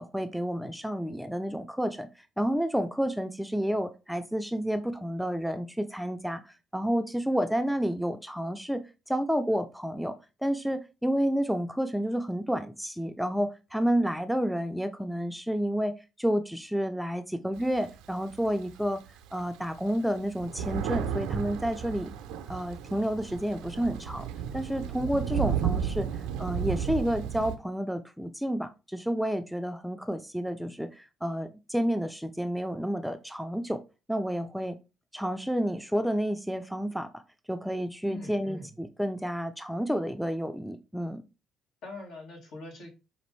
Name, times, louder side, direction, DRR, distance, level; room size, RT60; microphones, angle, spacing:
voice 1, 0.0-2.1 2.4-8.8 9.1-10.2 10.4-15.9 16.2-19.0 19.3-22.1 22.5-24.3 24.5-26.1 26.4-33.8 34.1-34.8 35.1-37.2 37.5-41.2, equal, ahead, 8 dB, 0.4 m, -30 dB
Thunder, 17.6-18.8 19.4-19.5 19.7-27.5, right 8 dB, 80° right, 0.5 m, -33 dB
voice 2, 38.0-38.7 41.8-42.9, left 2 dB, 70° left, 1 dB, 1.6 m, -42 dB
5.0 x 2.6 x 3.1 m, 0.28 s
hypercardioid pair, 60°, 0 cm